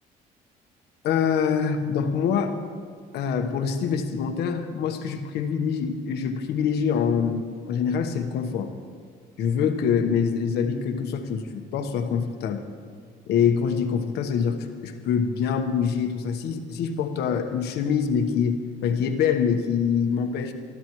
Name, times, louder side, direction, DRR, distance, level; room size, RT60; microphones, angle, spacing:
voice 1, 1.0-2.6 3.1-8.7 9.4-12.6 13.3-20.5, left 7 dB, 75° left, 6 dB, 1.2 m, -25 dB
24.5 x 12.5 x 3.1 m, 2.1 s
cardioid pair, 110°, 17 cm